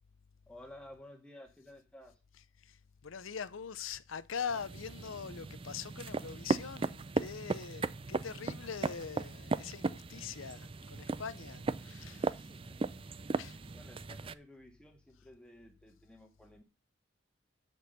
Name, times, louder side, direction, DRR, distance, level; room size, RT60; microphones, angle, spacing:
voice 1, 0.5-2.2 12.1-13.4 13.7-16.6, left 1 dB, 5° left, 2.0 m, -55 dB
voice 2, 2.6-12.6 13.4-13.6, left 6 dB, 80° left, 0.6 m, -43 dB
sound 1, 4.5-14.3, right 3 dB, 25° right, 0.4 m, -37 dB
8.1 x 6.1 x 6.7 m
head